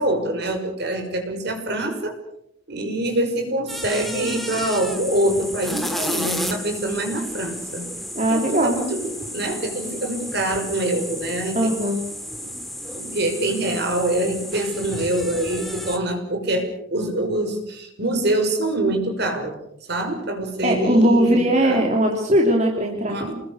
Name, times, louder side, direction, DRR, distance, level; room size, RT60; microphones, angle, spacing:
voice 1, 0.0-2.1 2.7-7.9 8.3-11.7 12.4-12.5 12.9-19.6 19.9-21.8 23.1-23.3, right 1 dB, 55° right, 5 dB, 6.0 m, -25 dB
sound 1, 3.7-16.0, equal, ahead, 2.6 m, -32 dB
voice 2, 8.1-8.8 11.5-12.0 20.6-23.2, right 1 dB, 35° right, 1 dB, 3.3 m, -19 dB
28.0 x 21.0 x 6.6 m, 0.76 s
head